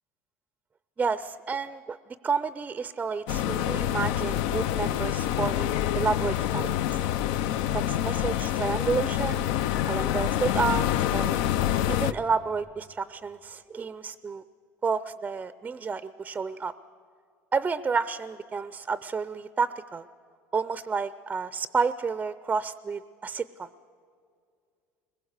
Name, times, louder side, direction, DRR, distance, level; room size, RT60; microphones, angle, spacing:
voice 1, 1.0-2.0 2.2-7.0 7.7-9.5 9.9-11.4 11.9-14.4 14.8-16.7 17.5-20.0 20.5-23.7, right 5 dB, 20° right, 14 dB, 0.5 m, -30 dB
sound 1, 3.3-12.1, left 12 dB, 80° left, 0.6 m, -27 dB
21.5 x 21.0 x 8.0 m, 2.3 s
cardioid pair, 130°, 6 cm